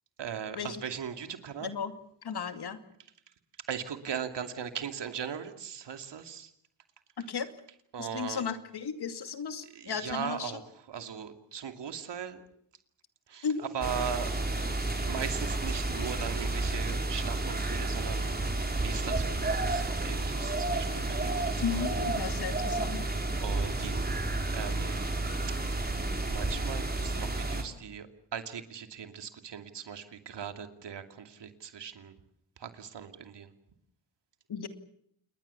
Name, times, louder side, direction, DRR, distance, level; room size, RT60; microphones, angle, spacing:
voice 1, 0.2-1.7 3.7-6.5 7.9-8.5 9.6-12.4 13.3-14.3 15.0-18.3 18.6-21.9 23.4-24.1 24.5-25.1 25.5-25.6 26.2-32.1 32.6-33.5, right 8 dB, 65° right, 7 dB, 2.7 m, -39 dB
voice 2, 2.2-2.8 7.3-7.5 8.0-10.5 13.4-13.6 21.6-23.1 34.5-34.7, left 6 dB, 55° left, 9 dB, 2.5 m, -34 dB
sound 1, 13.8-27.6, right 2 dB, 20° right, 4.5 m, -31 dB
28.5 x 20.5 x 7.0 m, 0.68 s
cardioid pair, 60°, 45 cm